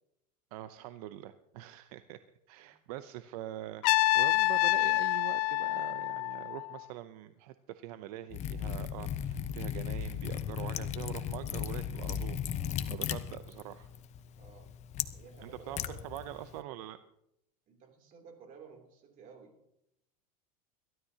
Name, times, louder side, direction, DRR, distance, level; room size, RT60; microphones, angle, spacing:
voice 1, 0.5-2.2 2.5-12.4 12.9-13.9 15.4-17.0, right 13 dB, 75° right, 11 dB, 0.7 m, -44 dB
Trumpet, 3.8-6.8, left 20 dB, 75° left, 0.4 m, -27 dB
Liquid, 8.3-16.6, left 9 dB, 35° left, 0.8 m, -37 dB
voice 2, 14.4-14.7 15.1-16.2 17.7-19.6, right 5 dB, 45° right, 3 dB, 3.1 m, -54 dB
22.0 x 12.5 x 2.9 m, 0.80 s
supercardioid pair, 125°, 19 cm